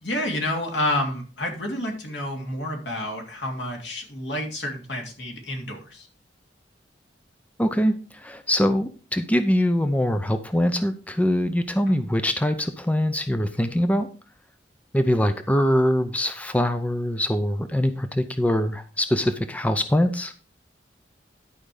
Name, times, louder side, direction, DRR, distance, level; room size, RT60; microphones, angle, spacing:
voice 1, 0.0-6.1 11.9-12.0, left 1 dB, 80° left, 1 dB, 2.9 m, -29 dB
voice 2, 7.6-14.1 14.9-20.3, equal, 10° left, 9 dB, 0.6 m, -23 dB
11.0 x 5.2 x 4.9 m, 0.37 s
head